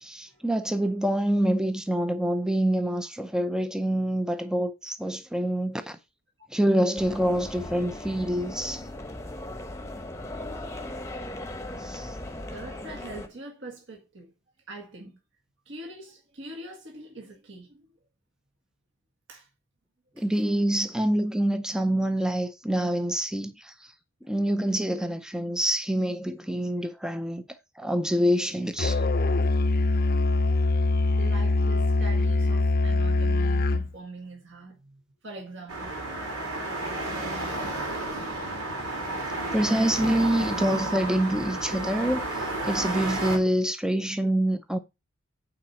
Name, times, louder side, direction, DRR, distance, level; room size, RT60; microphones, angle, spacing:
voice 1, 0.0-6.0 6.5-8.9 11.8-12.2 20.2-23.9 24.3-29.0 39.5-44.8, right 1 dB, 5° right, 0.5 m, -26 dB
sound 1, 7.0-13.3, left 1 dB, 15° left, 0.9 m, -38 dB
voice 2, 12.5-14.3 14.7-15.2 15.6-17.9 19.3-19.5 20.2-20.3 31.2-35.9 38.4-38.8, right 2 dB, 55° right, 1.6 m, -43 dB
Musical instrument, 28.8-33.9, left 3 dB, 45° left, 0.6 m, -23 dB
sound 2, 35.7-43.4, right 2 dB, 85° right, 3.5 m, -31 dB
8.9 x 4.2 x 5.8 m
head